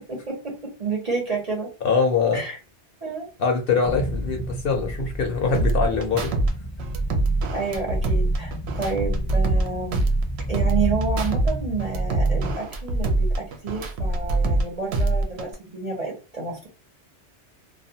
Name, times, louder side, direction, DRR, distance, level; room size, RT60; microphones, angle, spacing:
voice 1, 0.1-0.5 0.8-1.7 2.3-2.6 3.0-3.3 7.5-10.0 10.5-16.7, right 4 dB, 40° right, -1 dB, 0.7 m, -29 dB
voice 2, 1.8-2.4 3.4-6.4, left 5 dB, 60° left, 2 dB, 0.8 m, -23 dB
sound 1, 3.8-12.5, equal, 5° left, 0.6 m, -32 dB
sound 2, 5.5-6.5 6.8-9.7 9.9-11.5 11.8-14.6 14.9-15.5, right 2 dB, 70° right, 0.8 m, -23 dB
2.4 x 2.2 x 2.6 m, 0.32 s
omnidirectional pair, 1.2 m